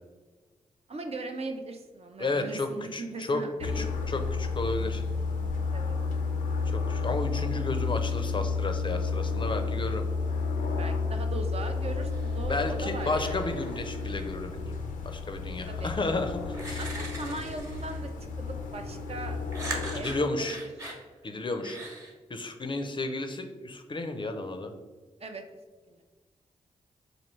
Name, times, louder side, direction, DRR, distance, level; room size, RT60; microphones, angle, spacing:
voice 1, 0.9-3.9 5.7-5.9 10.7-13.3 15.7-15.9 16.8-18.1 18.4-19.4 19.9-20.5 25.2-25.4 25.9-26.0, right 3 dB, 50° right, 5 dB, 0.5 m, -39 dB
voice 2, 2.2-5.0 6.7-10.1 12.5-14.7 15.0-16.8 19.9-20.6 21.2-21.8 22.3-24.7, left 2 dB, 35° left, 6 dB, 0.5 m, -32 dB
sound 1, 3.6-20.0, left 4 dB, 90° left, 0.4 m, -31 dB
sound 2, 12.1-12.5 12.9-14.3 15.9-16.0 16.5-18.1 19.5-21.0 21.6-22.1, right 2 dB, 25° right, 1.0 m, -41 dB
4.2 x 2.6 x 3.0 m, 1.3 s
cardioid pair, 50°, 14 cm